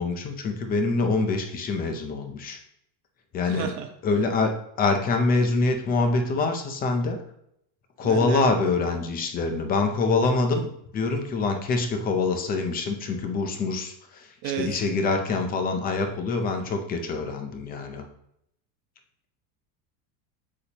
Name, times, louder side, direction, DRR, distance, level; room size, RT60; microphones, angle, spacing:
voice 1, 0.0-2.6 3.3-3.7 4.0-4.5 4.8-7.2 8.0-14.3 14.6-18.0, left 3 dB, 20° left, 5 dB, 0.5 m, -25 dB
voice 2, 3.4-3.9 8.0-8.5 14.4-14.7, right 10 dB, 75° right, 5 dB, 1.1 m, -32 dB
8.4 x 6.9 x 2.9 m, 0.75 s
cardioid pair, 175°, 50 cm